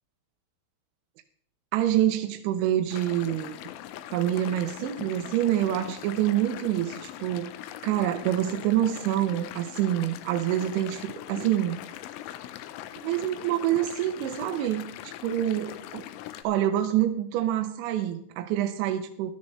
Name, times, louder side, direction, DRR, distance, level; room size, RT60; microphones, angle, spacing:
voice 1, 1.7-3.6 4.1-7.5 7.8-11.8 13.0-16.0 16.4-19.3, right 12 dB, 75° right, 5 dB, 3.0 m, -26 dB
sound 1, 2.9-16.4, left 12 dB, 80° left, 3.3 m, -41 dB
16.0 x 12.0 x 3.2 m, 0.64 s
omnidirectional pair, 5.7 m